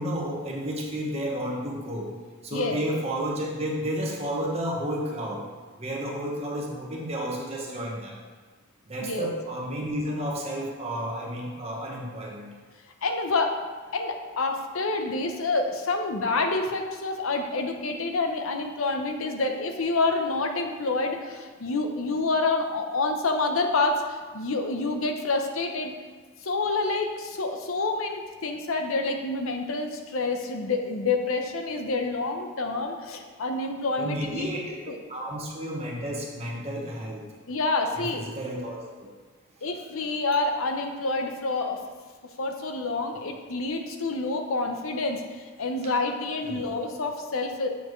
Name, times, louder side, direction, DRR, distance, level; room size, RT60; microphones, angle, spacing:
voice 1, 0.0-2.1 2.4-5.4 5.8-8.1 8.9-12.5 34.0-34.7 35.1-37.2 37.9-38.8 46.4-46.7, equal, 30° right, -3 dB, 1.2 m, -31 dB
voice 2, 13.0-13.6 13.9-25.9 26.4-34.5 34.9-35.0 37.5-38.2 39.6-41.8 42.4-47.7, left 3 dB, 70° left, 4 dB, 0.8 m, -28 dB
7.1 x 6.9 x 3.2 m, 1.5 s
head